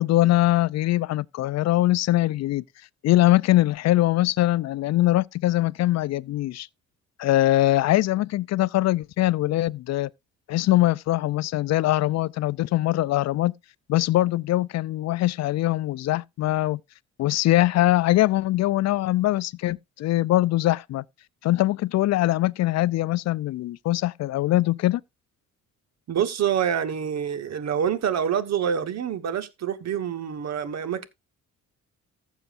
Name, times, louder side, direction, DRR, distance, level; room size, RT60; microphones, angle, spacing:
voice 1, 0.0-2.6 3.0-6.7 7.2-10.1 10.5-13.5 13.9-16.8 17.2-21.0 21.4-25.0, left 16 dB, 60° left, 0.4 m, -22 dB
voice 2, 26.1-31.1, right 8 dB, 60° right, 1.3 m, -26 dB
14.5 x 7.2 x 2.5 m
cardioid pair, 90°, 30 cm